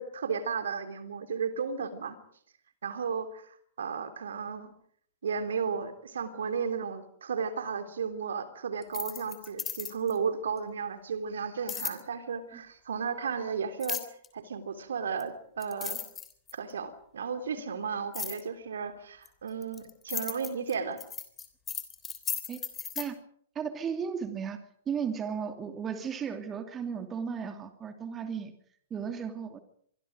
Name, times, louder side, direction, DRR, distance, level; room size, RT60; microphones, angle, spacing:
voice 1, 0.0-2.2 2.8-4.7 5.2-14.0 14.3-16.0 16.5-21.0, right 6 dB, 65° right, 9 dB, 3.2 m, -34 dB
sound 1, 8.8-10.2 11.7-12.0 13.8-14.3 15.2-15.3 15.6-16.7 18.1-18.4 19.3-23.1, left 7 dB, 15° left, 3.3 m, -36 dB
voice 2, 23.5-24.6 24.9-28.5 28.9-29.6, right 7 dB, 20° right, 8 dB, 2.7 m, -35 dB
25.5 x 24.0 x 5.1 m, 0.62 s
figure-of-eight pair, 110°, 0 cm